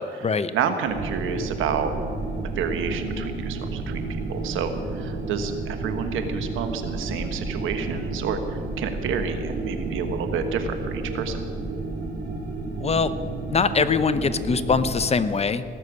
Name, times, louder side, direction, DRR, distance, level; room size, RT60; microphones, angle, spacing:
voice 1, 0.0-1.9 2.4-11.5, right 6 dB, 85° right, 7 dB, 1.3 m, -29 dB
sound 1, 0.8-15.1, right 3 dB, 55° right, 3.3 m, -31 dB
voice 2, 12.8-13.1 13.5-15.6, left 5 dB, 30° left, 13 dB, 0.7 m, -22 dB
17.0 x 6.7 x 8.5 m, 2.3 s
cardioid pair, 90°, 20 cm